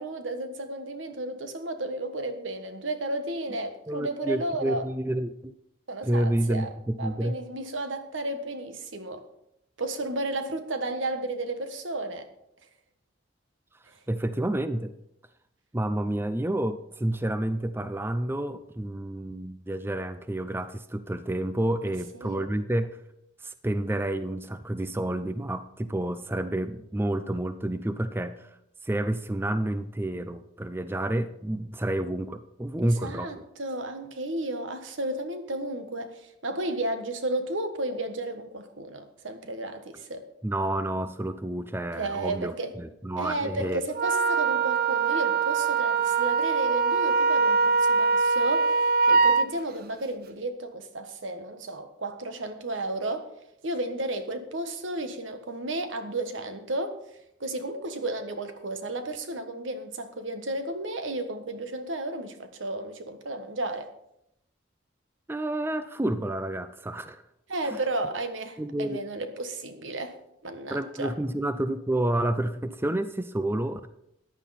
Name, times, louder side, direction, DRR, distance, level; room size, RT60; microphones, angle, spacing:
voice 1, 0.0-4.8 5.9-6.7 7.0-9.2 9.8-12.3 13.9-14.0 21.8-21.9 22.2-22.6 32.8-40.2 41.9-42.7 43.2-53.3 53.6-57.0 57.4-63.9 67.5-70.2 70.4-71.1, right 2 dB, 85° right, 1.5 m, -33 dB
voice 2, 3.9-5.5 6.0-6.7 7.0-7.3 14.1-14.9 15.7-23.0 23.4-28.5 28.8-33.4 40.4-43.8 65.3-67.2 67.7-67.8 68.6-69.0 70.7-73.9, right 1 dB, 10° right, 0.5 m, -29 dB
Wind instrument woodwind instrument, 43.9-49.5, right 4 dB, 50° right, 0.6 m, -23 dB
14.5 x 10.5 x 4.2 m
head